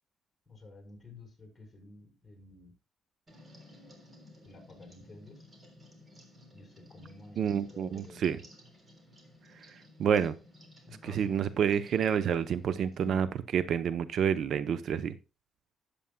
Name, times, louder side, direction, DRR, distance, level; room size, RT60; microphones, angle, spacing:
voice 1, 0.5-2.7 4.4-5.4 6.5-8.2 10.9-11.4 13.0-13.2, left 3 dB, 20° left, 3 dB, 4.4 m, -51 dB
sound 1, 3.3-13.1, left 1 dB, 30° right, 3.4 m, -56 dB
voice 2, 7.4-8.4 10.0-10.4 11.0-13.3 13.5-15.1, right 8 dB, 65° right, 14 dB, 0.6 m, -28 dB
13.0 x 8.4 x 2.2 m, 0.28 s
cardioid pair, 90°, 0 cm